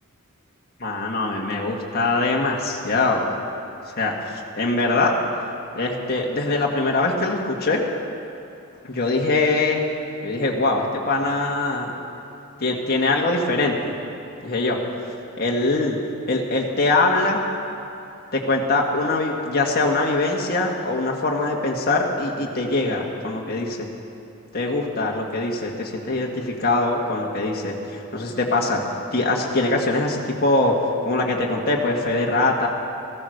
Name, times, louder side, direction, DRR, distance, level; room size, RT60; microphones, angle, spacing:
voice 1, 0.8-3.3 4.0-4.1 4.6-5.1 5.8-7.8 8.8-9.8 10.2-11.9 12.6-13.9 14.4-14.8 15.4-16.0 16.3-17.4 18.3-23.9 24.5-30.8 31.1-32.7, left 2 dB, 45° left, -1 dB, 1.7 m, -22 dB
15.0 x 14.0 x 6.5 m, 2.8 s
head